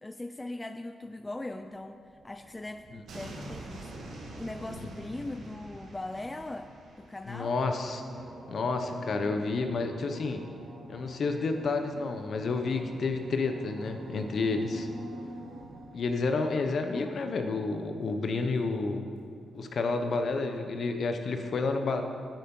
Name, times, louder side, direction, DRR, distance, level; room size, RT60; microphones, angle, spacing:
voice 1, 0.0-3.9 4.4-6.7 7.0-7.6 16.9-17.3, left 2 dB, 15° left, 8 dB, 0.4 m, -40 dB
sound 1, 1.6-19.9, right 1 dB, 85° right, 2.0 m, -47 dB
voice 2, 7.3-8.0 8.5-10.4 10.9-14.9 15.9-19.1 19.5-22.0, left 3 dB, 60° left, 6 dB, 1.0 m, -30 dB
9.2 x 9.2 x 5.5 m, 2.3 s
cardioid pair, 100°, 0 cm